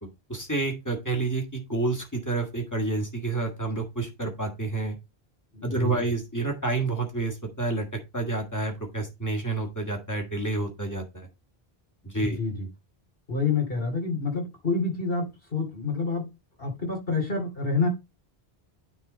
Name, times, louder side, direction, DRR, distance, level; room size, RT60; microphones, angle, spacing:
voice 1, 0.0-5.0 5.6-7.9 8.1-11.3 12.0-12.4, right 3 dB, 15° left, 1 dB, 1.8 m, -29 dB
voice 2, 5.5-5.9 12.2-12.7 13.3-16.3 16.6-17.9, left 4 dB, 60° left, 1 dB, 3.0 m, -28 dB
9.5 x 3.7 x 3.9 m, 0.24 s
omnidirectional pair, 1.1 m